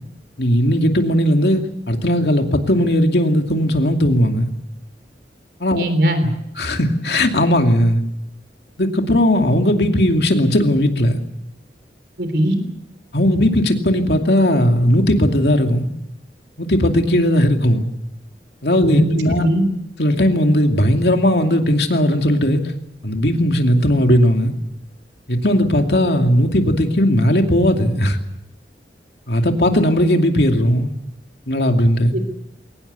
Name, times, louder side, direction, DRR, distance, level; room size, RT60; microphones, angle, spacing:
voice 1, 0.4-4.5 5.6-5.8 6.2-8.0 8.8-11.2 13.1-15.9 16.6-17.9 18.6-19.5 20.0-22.6 23.0-24.5 25.3-28.2 29.3-30.9 31.5-32.1, equal, 65° left, 4 dB, 2.6 m, -17 dB
voice 2, 5.7-6.2 12.2-12.6 18.9-19.1 19.4-19.6 32.1-32.2, equal, 65° right, 9 dB, 3.6 m, -19 dB
22.5 x 18.5 x 8.3 m, 0.81 s
head